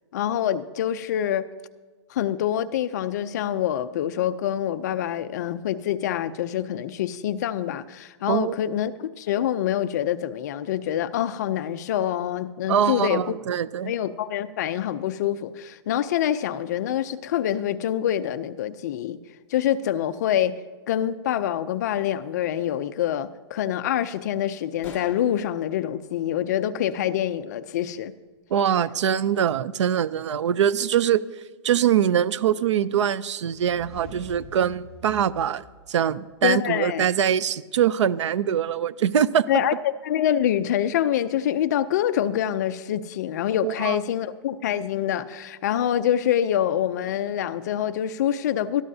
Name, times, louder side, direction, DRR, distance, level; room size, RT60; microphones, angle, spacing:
voice 1, 0.1-1.5 2.1-13.2 13.9-19.2 19.5-20.6 20.9-28.1 36.4-37.0 39.5-39.7 40.0-48.8, left 10 dB, 35° left, 12 dB, 0.5 m, -26 dB
voice 2, 12.7-13.9 28.5-31.2 31.6-39.5 43.6-44.0, right 9 dB, 75° right, 18 dB, 0.5 m, -23 dB
sound 1, 24.8-27.4, left 5 dB, 15° left, 1.8 m, -46 dB
sound 2, 33.5-36.5, left 2 dB, 5° right, 3.1 m, -45 dB
20.0 x 13.0 x 2.7 m, 1.3 s
hypercardioid pair, 170°, 15 cm